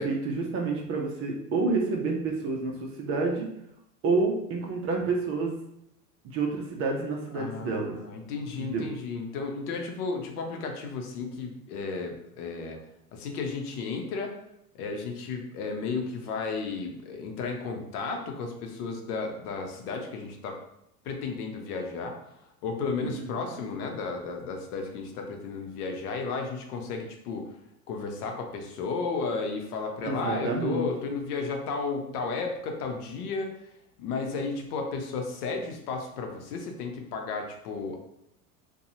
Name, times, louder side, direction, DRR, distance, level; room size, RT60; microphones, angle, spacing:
voice 1, 0.0-3.5 4.0-5.5 6.2-7.9 8.6-8.8 23.0-23.3 30.0-30.9, right 3 dB, 30° right, 1 dB, 0.5 m, -29 dB
voice 2, 7.3-12.8 13.1-14.3 14.8-20.6 21.0-27.5 27.9-33.5 34.0-38.0, left 4 dB, 70° left, 3 dB, 0.8 m, -33 dB
2.8 x 2.3 x 2.7 m, 0.78 s
hypercardioid pair, 110°, 47 cm